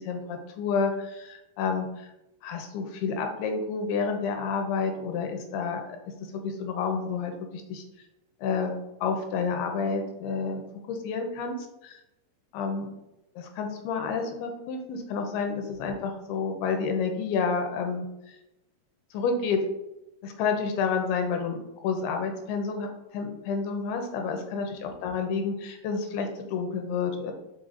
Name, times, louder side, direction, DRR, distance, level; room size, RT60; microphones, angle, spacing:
voice 1, 0.0-2.1 2.4-6.0 6.3-7.8 8.4-10.6 10.9-11.6 11.8-12.0 12.5-12.9 13.4-18.4 19.1-19.7 20.2-27.3, left 5 dB, 90° left, 5 dB, 2.7 m, -30 dB
5.7 x 5.0 x 3.8 m, 0.91 s
omnidirectional pair, 4.5 m